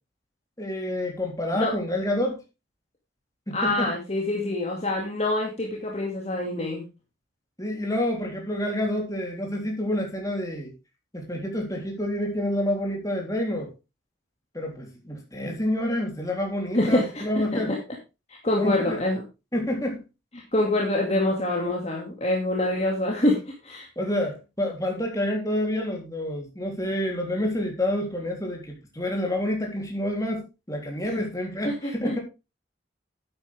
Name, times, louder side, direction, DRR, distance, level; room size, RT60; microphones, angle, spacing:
voice 1, 0.6-2.4 3.5-3.9 7.6-10.7 11.1-13.7 14.5-17.7 18.6-19.0 19.5-20.0 24.0-32.2, left 1 dB, 20° left, 3.4 m, -28 dB
voice 2, 3.5-6.8 16.7-17.2 17.5-17.6 18.3-19.2 20.5-23.4 23.6-23.9 31.6-32.2, left 1 dB, 35° left, 2.4 m, -25 dB
11.5 x 9.2 x 3.5 m
head